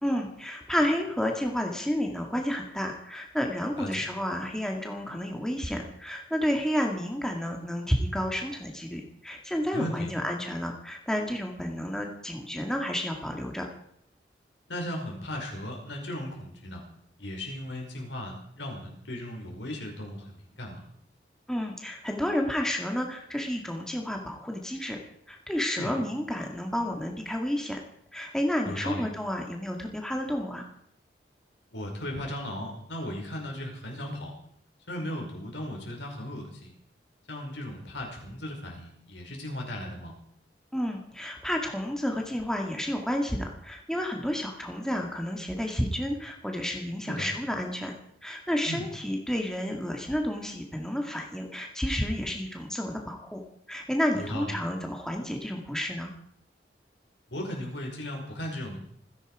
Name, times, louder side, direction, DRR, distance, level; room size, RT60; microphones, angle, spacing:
voice 1, 0.0-13.7 21.5-25.0 25.3-27.8 28.1-30.7 40.7-47.9 48.2-53.4 53.7-56.1, equal, 5° left, 1 dB, 2.1 m, -31 dB
voice 2, 9.7-10.1 14.7-16.8 17.2-20.8 25.8-25.9 28.7-29.0 31.7-34.3 34.9-36.7 37.3-40.1 47.1-47.3 48.7-48.9 54.1-54.5 57.3-58.8, left 1 dB, 90° left, 1 dB, 5.5 m, -36 dB
27.0 x 10.0 x 5.0 m, 0.69 s
head